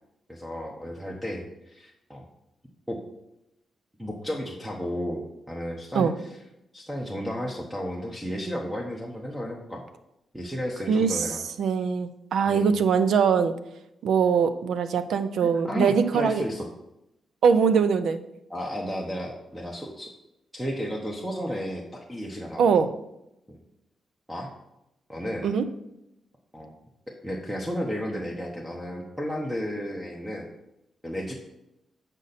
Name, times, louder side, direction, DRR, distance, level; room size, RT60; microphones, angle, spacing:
voice 1, 0.3-1.4 1.7-2.2 2.9-3.0 4.0-6.1 6.7-9.8 10.3-11.4 12.5-12.7 15.4-16.6 18.5-20.1 20.5-22.6 23.5-23.6 24.3-24.5 25.1-25.5 26.5-26.7 27.2-30.5 31.0-31.3, equal, 5° right, -1 dB, 0.9 m, -33 dB
voice 2, 10.9-13.5 14.0-16.4 17.4-18.2 22.6-22.9 25.4-25.6, right 6 dB, 85° right, 11 dB, 0.5 m, -22 dB
8.3 x 5.3 x 4.2 m, 0.88 s
wide cardioid pair, 125°, 0 cm